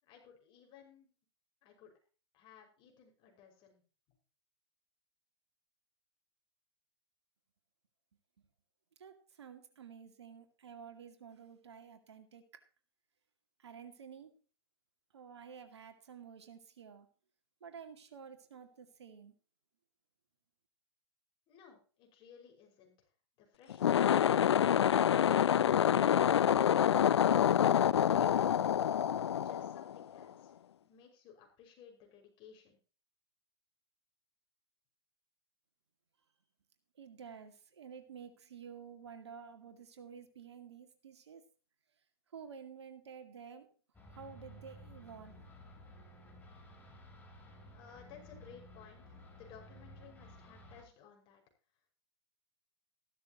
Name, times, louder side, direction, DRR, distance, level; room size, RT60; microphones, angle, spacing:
voice 1, 0.0-1.1 1.6-1.9 2.3-3.8 21.5-23.1 23.4-25.0 29.2-30.6 30.9-32.8 47.7-51.4, left 7 dB, 35° left, 1 dB, 5.8 m, -58 dB
voice 2, 9.0-12.4 13.6-14.3 15.1-17.1 17.6-19.3 37.0-41.4 42.3-43.7 44.1-45.5, right 6 dB, 75° right, 7 dB, 2.3 m, -51 dB
sound 1, 23.7-30.2, left 9 dB, 75° left, 0.5 m, -27 dB
sound 2, 43.9-50.8, equal, 10° left, 4.2 m, -55 dB
14.5 x 12.5 x 3.1 m, 0.36 s
hypercardioid pair, 115°, 14 cm